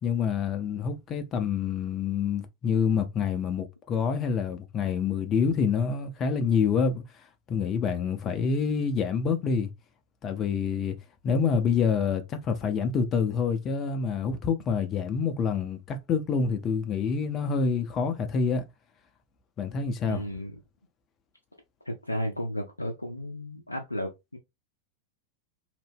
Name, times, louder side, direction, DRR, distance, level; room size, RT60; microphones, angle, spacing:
voice 1, 0.0-7.0 7.5-9.7 10.2-11.0 11.2-18.6 19.6-20.2, left 6 dB, 30° left, 0.5 m, -27 dB
voice 2, 20.0-20.6 21.8-24.4, equal, 85° left, 0.4 m, -34 dB
2.8 x 2.0 x 3.3 m
figure-of-eight pair, 90°, 0 cm